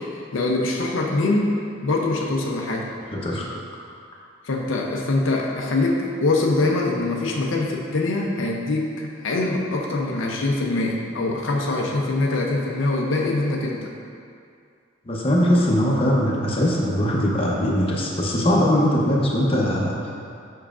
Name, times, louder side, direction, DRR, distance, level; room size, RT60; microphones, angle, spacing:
voice 1, 0.0-1.5 1.8-2.9 3.3-3.4 4.4-13.9, left 2 dB, 75° left, -1 dB, 0.6 m, -23 dB
voice 2, 3.1-3.4 15.1-19.9, equal, 30° left, -4 dB, 0.7 m, -21 dB
7.1 x 5.6 x 2.4 m, 2.3 s
head